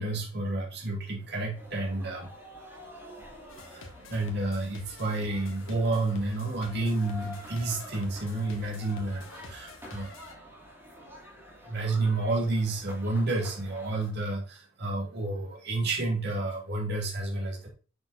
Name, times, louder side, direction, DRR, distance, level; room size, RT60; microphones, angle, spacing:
voice 1, 0.0-2.3 3.7-10.1 11.6-17.7, right 2 dB, 60° right, -1 dB, 2.2 m, -30 dB
sound 1, 1.5-14.1, equal, 10° right, 2.2 m, -48 dB
sound 2, 3.5-10.3, left 2 dB, 85° left, 1.6 m, -49 dB
7.3 x 6.1 x 2.7 m, 0.37 s
head